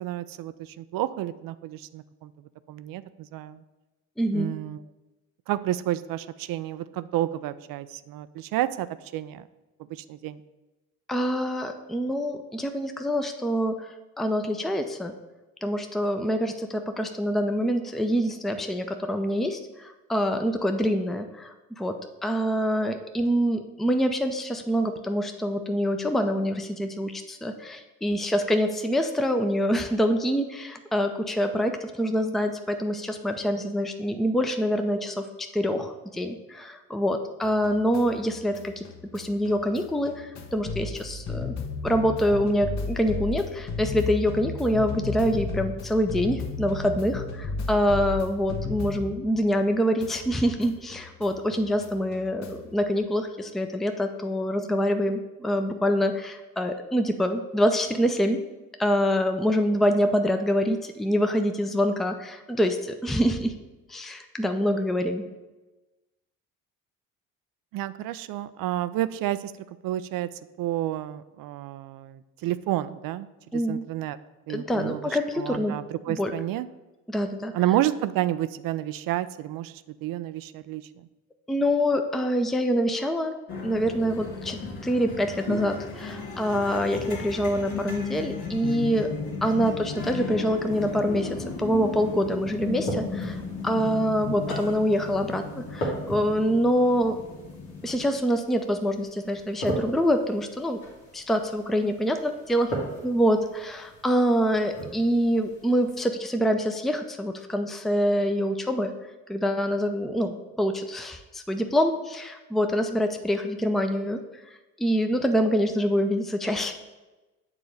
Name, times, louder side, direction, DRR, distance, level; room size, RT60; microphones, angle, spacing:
voice 1, 0.0-2.3 2.7-3.6 4.3-4.8 5.5-8.9 9.1-9.4 9.9-10.4 67.7-69.5 69.8-70.3 70.6-73.3 73.5-74.2 74.5-76.7 77.5-81.1, right 13 dB, 55° right, 15 dB, 0.5 m, -30 dB
voice 2, 4.2-4.5 11.1-15.1 15.6-21.9 22.2-38.8 39.1-41.5 41.8-58.4 58.8-63.5 63.9-65.2 73.5-73.8 74.5-75.8 76.1-76.3 77.1-77.5 81.5-83.3 83.6-84.6 84.8-89.1 89.4-97.2 97.8-100.8 101.1-102.7 103.0-108.9 109.3-114.2 114.8-116.7, equal, ahead, 6 dB, 0.6 m, -25 dB
sound 1, 37.4-49.7 50.0-52.8, left 4 dB, 45° left, 0.9 m, -35 dB
sound 2, 83.5-98.1, left 4 dB, 60° left, 1.5 m, -35 dB
sound 3, 90.7-106.1, equal, 85° left, 1.9 m, -39 dB
7.3 x 3.8 x 6.5 m, 1.1 s
hypercardioid pair, 50°, 40 cm